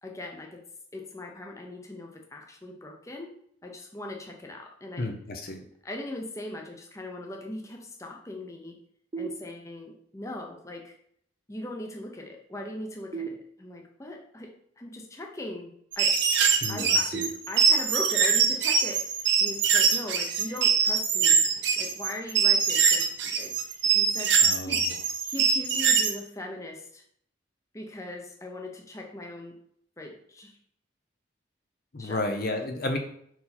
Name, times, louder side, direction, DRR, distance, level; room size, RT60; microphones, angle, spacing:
voice 1, 0.0-0.6 0.9-3.3 3.6-5.1 5.8-8.7 9.1-11.0 11.5-14.5 14.8-16.1 16.7-17.1 17.5-21.5 21.8-23.5 23.8-27.0 27.7-29.5 30.0-30.5 32.0-32.2, left 1 dB, 15° left, 1 dB, 0.8 m, -39 dB
voice 2, 5.0-5.6 16.6-17.3 24.4-24.8 31.9-33.0, left 2 dB, 45° left, 4 dB, 0.7 m, -32 dB
sound 1, 9.1-10.1 13.1-14.1 17.1-18.1, right 5 dB, 30° right, 0.6 m, -39 dB
sound 2, 15.9-26.2, right 6 dB, 60° right, 0.8 m, -23 dB
5.4 x 4.6 x 4.2 m, 0.67 s
head